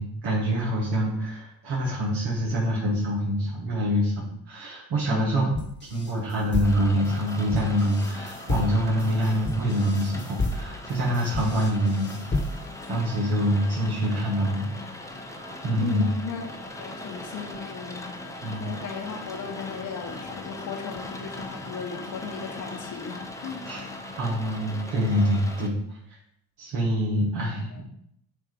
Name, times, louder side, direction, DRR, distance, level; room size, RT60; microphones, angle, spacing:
voice 1, 0.0-5.5 5.9-12.2 12.9-14.7 15.6-16.1 18.4-18.7 23.7-23.8 24.2-26.0 26.6-27.8, equal, 70° right, -5 dB, 1.7 m, -25 dB
voice 2, 5.1-5.6 15.8-23.6 27.7-27.8, left 5 dB, 45° left, 3 dB, 1.1 m, -36 dB
sound 1, 5.5-12.8, left 2 dB, 25° left, 1.3 m, -31 dB
Rain, 6.6-25.7, left 2 dB, 5° left, 0.8 m, -39 dB
7.0 x 2.8 x 4.8 m, 0.72 s
supercardioid pair, 70°, 43 cm